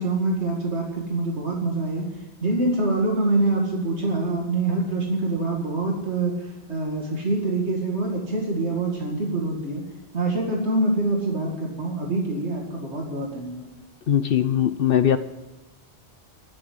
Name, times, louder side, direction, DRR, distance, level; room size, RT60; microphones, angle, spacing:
voice 1, 0.0-2.1 2.4-9.8 10.1-13.7, right 2 dB, 80° right, -1 dB, 2.5 m, -25 dB
voice 2, 14.1-15.2, left 10 dB, 60° left, 12 dB, 0.8 m, -20 dB
12.5 x 7.7 x 9.4 m, 1.1 s
omnidirectional pair, 1.1 m